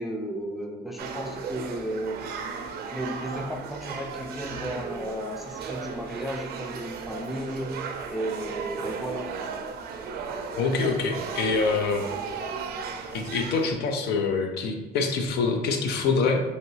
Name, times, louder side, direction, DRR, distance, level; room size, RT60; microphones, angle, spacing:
voice 1, 0.0-2.2 2.9-7.8 8.1-9.3, right 1 dB, ahead, 1 dB, 0.3 m, -34 dB
sound 1, 1.0-13.8, right 5 dB, 65° right, 0.4 m, -36 dB
voice 2, 10.5-12.0 13.1-16.4, left 4 dB, 75° left, 4 dB, 0.5 m, -25 dB
3.1 x 2.8 x 2.7 m, 1.2 s
cardioid pair, 110°, 17 cm